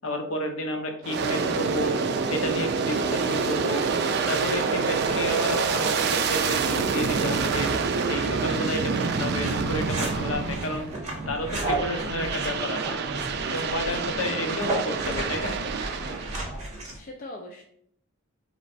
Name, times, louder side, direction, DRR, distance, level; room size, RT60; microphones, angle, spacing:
voice 1, 0.0-2.0 2.3-3.8 4.2-7.7 8.1-10.9 11.3-13.0 13.5-15.6, left 1 dB, 65° left, 4 dB, 0.8 m, -31 dB
Aircraft, 1.0-11.1 11.5-16.5, right 5 dB, 50° right, 0.4 m, -27 dB
sound 1, 9.4-17.0, right 2 dB, 30° right, 1.2 m, -33 dB
voice 2, 13.9-14.7 16.9-17.6, left 1 dB, 40° left, 1 dB, 0.4 m, -43 dB
4.3 x 3.1 x 4.1 m, 0.68 s
head